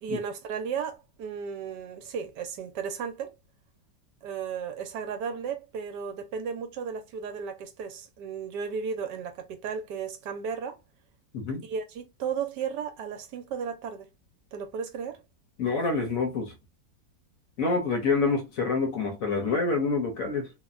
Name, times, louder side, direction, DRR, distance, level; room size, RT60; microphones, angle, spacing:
voice 1, 0.0-3.3 4.2-10.8 11.6-14.1 14.5-15.2, right 6 dB, 75° right, 1.2 m, -34 dB
voice 2, 15.6-16.5 17.6-20.5, left 4 dB, 60° left, 1.0 m, -27 dB
3.3 x 2.1 x 2.4 m
omnidirectional pair, 1.9 m